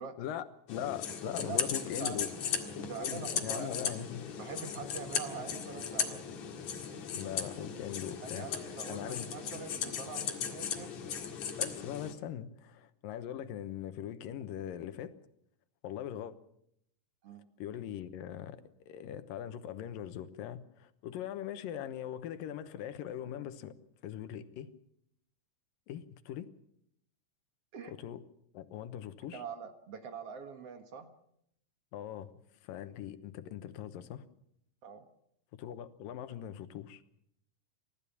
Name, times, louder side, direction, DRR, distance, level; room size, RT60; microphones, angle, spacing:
voice 1, 0.2-2.3 2.8-4.2 7.1-8.5 8.9-9.3 11.6-15.1 15.8-16.3 17.6-23.7 24.0-24.7 25.9-26.5 27.9-28.2 28.5-29.4 31.9-32.3 32.7-34.3 35.6-37.0, left 10 dB, 90° left, 11 dB, 2.8 m, -41 dB
sound 1, 0.7-12.1, left 7 dB, 60° left, 3.0 m, -37 dB
voice 2, 2.0-2.3 2.7-3.9 4.4-6.3 8.2-11.2 17.2-17.4 27.7-27.9 29.3-31.1 34.8-35.1, right 6 dB, 55° right, 7 dB, 2.2 m, -44 dB
28.5 x 14.5 x 7.1 m, 0.75 s
omnidirectional pair, 3.8 m